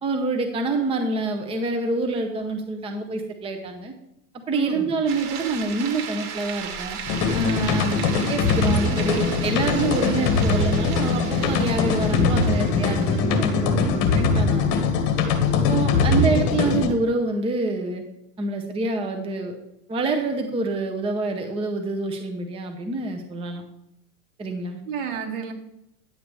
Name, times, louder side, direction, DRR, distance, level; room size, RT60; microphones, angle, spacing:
voice 1, 0.0-3.9 4.5-7.0 7.3-14.7 15.5-18.0 18.4-19.6 19.9-23.6 24.4-24.8, right 3 dB, 10° right, 4 dB, 0.7 m, -27 dB
voice 2, 4.5-4.9 7.9-8.2 15.8-16.1 24.9-25.5, right 6 dB, 55° right, 3 dB, 2.0 m, -32 dB
sound 1, 5.1-13.6, right 7 dB, 80° right, 1.5 m, -36 dB
sound 2, 7.1-16.9, left 4 dB, 50° left, 1.6 m, -21 dB
10.0 x 7.7 x 3.3 m, 0.85 s
supercardioid pair, 125°, 46 cm